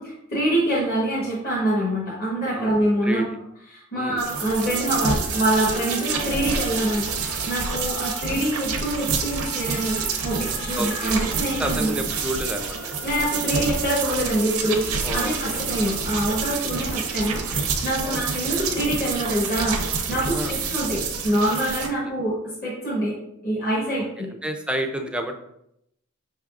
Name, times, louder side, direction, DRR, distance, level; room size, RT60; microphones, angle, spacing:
voice 1, 0.0-3.2 3.7-12.0 13.0-23.2 23.4-24.3, right 1 dB, 45° left, -6 dB, 1.0 m, -25 dB
sound 1, 4.2-21.9, right 5 dB, 80° right, 0.6 m, -28 dB
sound 2, 4.3-18.1, left 2 dB, 75° left, 0.5 m, -40 dB
voice 2, 10.8-11.2 11.6-13.0 15.0-15.6 18.0-18.6 20.3-20.5 24.2-25.3, right 1 dB, 5° right, 5 dB, 0.3 m, -30 dB
5.3 x 3.4 x 2.4 m, 0.78 s
head